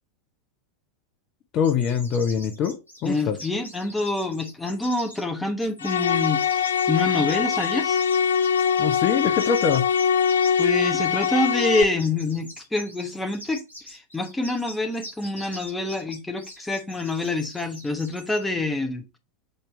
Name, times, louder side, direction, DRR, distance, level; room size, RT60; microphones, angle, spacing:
voice 1, 1.5-3.4 8.8-9.9, left 7 dB, 35° left, 0.7 m, -24 dB
sound 1, 1.6-18.4, left 1 dB, 90° right, 3.2 m, -43 dB
voice 2, 3.0-8.0 10.6-13.6 13.9-19.0, left 2 dB, 5° left, 1.1 m, -26 dB
sound 2, 5.8-11.8, left 7 dB, 65° left, 0.4 m, -22 dB
6.7 x 4.4 x 3.2 m
figure-of-eight pair, 90°, 0 cm